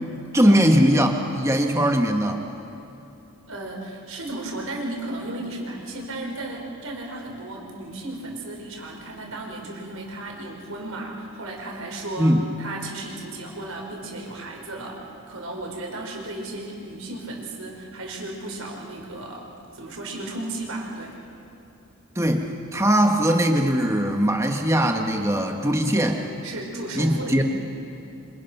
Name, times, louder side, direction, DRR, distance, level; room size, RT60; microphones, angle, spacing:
voice 1, 0.1-2.4 12.2-12.4 22.1-26.2 26.9-27.4, equal, 15° right, 3 dB, 1.7 m, -20 dB
voice 2, 3.5-21.2 26.4-27.4, right 2 dB, 70° right, 0 dB, 4.8 m, -34 dB
28.0 x 26.0 x 6.1 m, 2.9 s
head